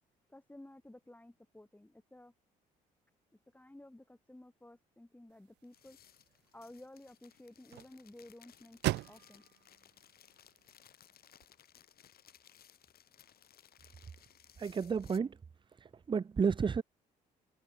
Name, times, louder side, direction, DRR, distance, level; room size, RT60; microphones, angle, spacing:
voice 1, 0.3-2.3 3.5-6.0 6.5-9.4, left 1 dB, 10° left, 3.9 m, -54 dB
sound 1, 5.3-11.5, right 18 dB, 75° right, 1.9 m, -43 dB
sound 2, 5.6-15.2, left 10 dB, 60° left, 5.5 m, -62 dB
voice 2, 14.6-15.3 16.1-16.8, right 6 dB, 25° right, 0.6 m, -31 dB
hypercardioid pair, 55°, 18 cm